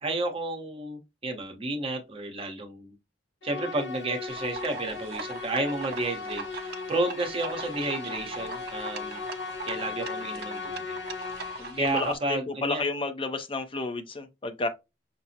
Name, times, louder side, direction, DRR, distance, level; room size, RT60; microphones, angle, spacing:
voice 1, 0.0-2.9 3.4-9.2 9.7-11.0 11.8-12.8, right 2 dB, 30° right, 0.8 m, -31 dB
Musical instrument, 3.4-11.9, left 4 dB, 65° left, 0.9 m, -37 dB
sound 1, 4.3-12.2, right 5 dB, 55° right, 0.6 m, -41 dB
voice 2, 11.6-14.7, left 3 dB, 30° left, 0.5 m, -31 dB
5.9 x 2.0 x 2.7 m
head